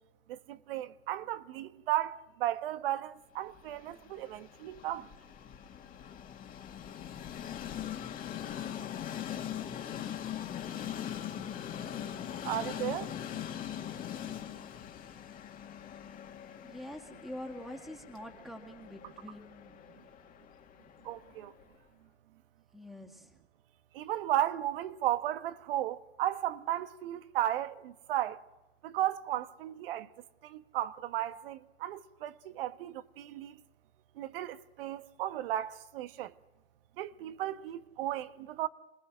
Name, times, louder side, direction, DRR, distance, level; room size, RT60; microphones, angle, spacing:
voice 1, 0.3-5.1 12.4-13.1 21.0-21.5 23.9-28.4 28.8-30.1 30.4-33.5 34.2-36.3 37.0-38.7, right 13 dB, 60° right, 1.2 m, -35 dB
Train, 3.5-21.6, left 10 dB, 25° left, 2.0 m, -42 dB
voice 2, 16.6-19.8 22.7-23.3, left 1 dB, ahead, 2.2 m, -45 dB
27.0 x 19.5 x 6.2 m
hypercardioid pair, 115°, 32 cm